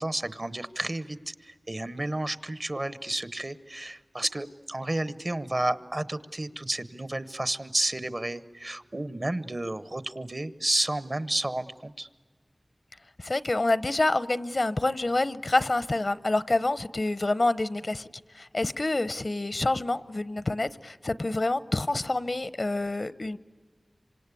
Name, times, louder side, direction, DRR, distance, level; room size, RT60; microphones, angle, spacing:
voice 1, 0.0-12.1, right 1 dB, 45° right, 1.0 m, -31 dB
voice 2, 13.2-18.1 18.3-23.4, left 2 dB, 60° left, 0.8 m, -27 dB
27.0 x 25.5 x 8.4 m
wide cardioid pair, 45°, 0 cm